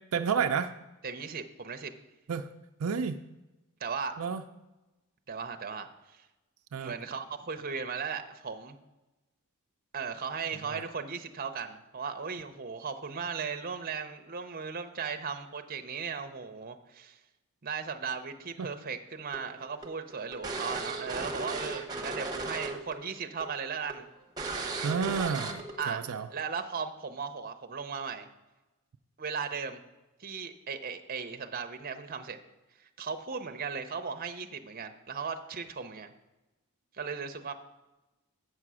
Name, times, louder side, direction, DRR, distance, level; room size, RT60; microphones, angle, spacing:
voice 1, 0.1-0.7 2.3-2.5 2.8-3.2 4.2-4.4 6.7-6.9 10.7-10.8 18.6-18.7 24.8-26.3, right 6 dB, 75° right, 6 dB, 0.5 m, -30 dB
voice 2, 1.0-1.9 3.8-4.1 5.3-6.3 6.8-8.8 9.9-17.2 17.6-24.1 24.9-25.1 25.8-26.0 26.3-28.3 29.2-29.8 30.2-32.4 32.8-36.1 37.0-37.5, right 5 dB, 40° right, 6 dB, 0.7 m, -37 dB
sound 1, 19.3-23.0 23.2-23.4 23.9-24.0 24.4-25.8, right 3 dB, 15° right, 1.0 m, -36 dB
7.9 x 6.8 x 6.2 m, 1.0 s
head